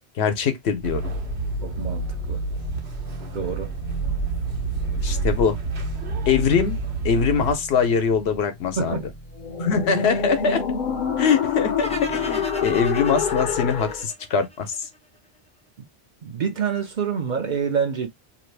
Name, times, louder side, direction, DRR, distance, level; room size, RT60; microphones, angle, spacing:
voice 1, 0.2-1.0 5.0-5.6 6.3-6.8 7.0-9.0 9.6-10.6 11.2-14.8, left 6 dB, 75° left, 1.0 m, -22 dB
sound 1, 0.8-14.0, left 4 dB, 50° left, 0.7 m, -30 dB
sound 2, 0.8-7.5, right 3 dB, 80° right, 1.2 m, -29 dB
voice 2, 1.6-2.4 3.3-3.7 8.8-9.1 16.2-18.1, right 6 dB, 55° right, 0.6 m, -27 dB
sound 3, 11.8-15.0, equal, 10° left, 0.6 m, -36 dB
2.9 x 2.5 x 3.2 m
omnidirectional pair, 1.1 m